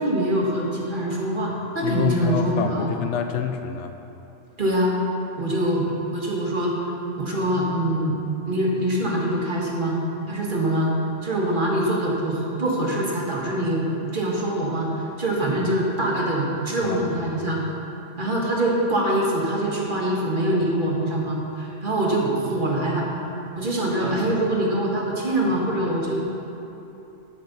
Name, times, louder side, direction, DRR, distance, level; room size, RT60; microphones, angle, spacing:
voice 1, 0.0-2.9 4.6-4.9 5.4-5.9 6.1-6.7 7.2-8.1 8.5-10.0 10.3-10.9 11.2-13.9 14.1-17.6 18.2-23.1 23.5-26.2, right 1 dB, 45° right, -3 dB, 1.7 m, -24 dB
voice 2, 1.8-3.9 16.8-17.1, left 8 dB, 85° left, 7 dB, 0.9 m, -26 dB
12.0 x 8.6 x 4.0 m, 3.0 s
omnidirectional pair, 1.2 m